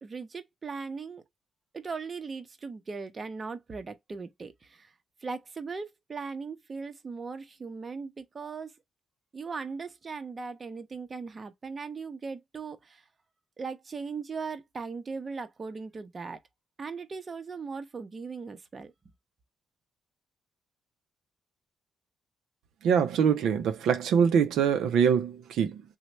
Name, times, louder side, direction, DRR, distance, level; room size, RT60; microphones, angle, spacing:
voice 1, 0.0-1.2 1.7-4.9 5.2-8.7 9.3-13.0 13.6-16.4 16.8-18.9, right 4 dB, 35° right, 0.6 m, -38 dB
voice 2, 22.8-25.8, right 7 dB, 80° right, 0.4 m, -24 dB
3.1 x 2.1 x 4.2 m
cardioid pair, 90°, 0 cm